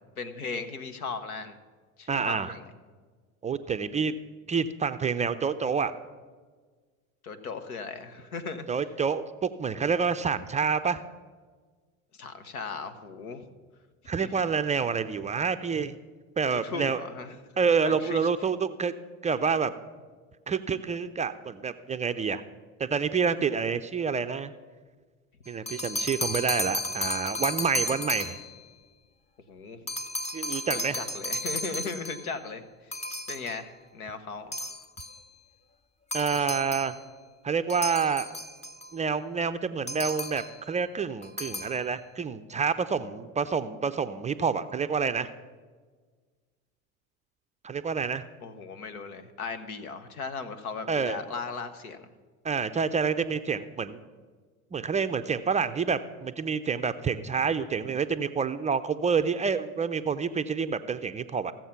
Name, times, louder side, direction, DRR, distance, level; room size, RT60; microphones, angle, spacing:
voice 1, 0.2-1.6 2.0-2.6 7.2-8.7 12.2-13.4 14.2-14.4 16.5-17.3 17.8-18.3 29.5-29.8 30.7-32.9 33.3-34.5 48.4-52.1, left 4 dB, 90° left, 11 dB, 1.0 m, -37 dB
voice 2, 2.1-2.6 3.4-4.1 4.5-5.9 8.7-11.0 14.1-16.0 16.4-17.0 17.6-18.9 19.2-19.7 20.5-22.4 22.8-24.5 25.5-28.4 30.3-31.0 36.1-36.9 37.4-38.3 38.9-45.3 47.6-48.2 50.9-51.2 52.4-54.0 54.7-61.5, right 5 dB, 20° right, 10 dB, 0.4 m, -28 dB
sound 1, 25.5-28.6 29.9-32.3 32.9-33.6 34.5-35.2 36.1-37.0 37.7-38.9 39.9-40.6 41.2-41.8, left 1 dB, 15° left, 0.8 m, -34 dB
15.0 x 7.4 x 5.7 m, 1.5 s
hypercardioid pair, 80°, 42 cm